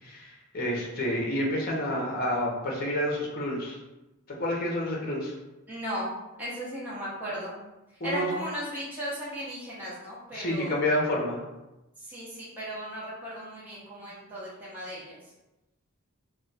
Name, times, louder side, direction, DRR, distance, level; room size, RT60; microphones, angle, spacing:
voice 1, 0.0-3.8 4.4-5.3 8.0-8.3 10.3-11.4, left 1 dB, 45° left, -2 dB, 0.7 m, -29 dB
voice 2, 5.7-6.1 6.4-7.5 8.0-10.8 12.0-15.2, equal, 10° right, -9 dB, 0.7 m, -36 dB
2.3 x 2.1 x 3.9 m, 1.0 s
head